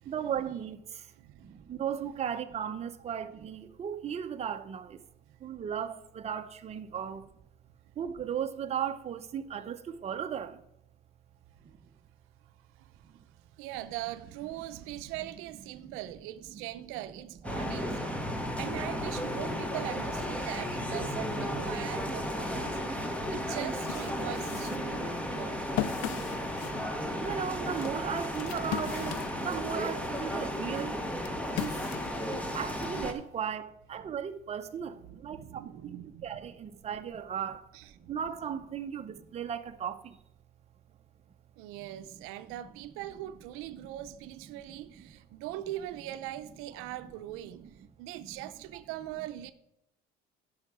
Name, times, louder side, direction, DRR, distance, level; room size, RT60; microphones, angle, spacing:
voice 1, 0.0-1.1 1.4-5.0 5.4-7.3 8.0-10.6 13.1-13.2 15.8-16.0 16.5-16.6 17.8-18.2 20.8-20.9 22.7-22.9 23.5-23.6 24.9-25.6 26.5-26.6 27.2-31.0 31.5-31.8 32.5-37.7 38.1-40.2 41.9-42.1 42.5-42.6 44.7-45.0 46.9-47.0 47.6-47.7 48.2-48.5, right 8 dB, 30° right, 0.6 m, -37 dB
voice 2, 1.2-1.6 5.3-5.4 12.8-13.0 13.6-18.0 18.6-22.8 23.1-25.6 35.1-36.3 37.7-38.1 41.6-47.7 48.0-49.5, right 14 dB, 85° right, 0.5 m, -41 dB
sound 1, 17.4-33.1, equal, 5° left, 1.0 m, -34 dB
sound 2, 23.5-29.8 30.3-32.9, left 13 dB, 75° left, 0.5 m, -39 dB
11.5 x 5.6 x 4.9 m
cardioid pair, 115°, 21 cm